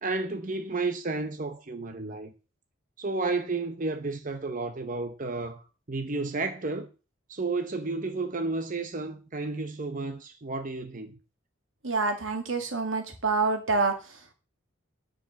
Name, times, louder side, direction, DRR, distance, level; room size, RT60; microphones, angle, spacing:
voice 1, 0.0-2.3 3.0-6.9 7.3-11.2, right 3 dB, 45° right, 0.9 m, -32 dB
voice 2, 11.8-14.3, right 3 dB, 85° right, 2.2 m, -27 dB
10.0 x 5.3 x 6.5 m
head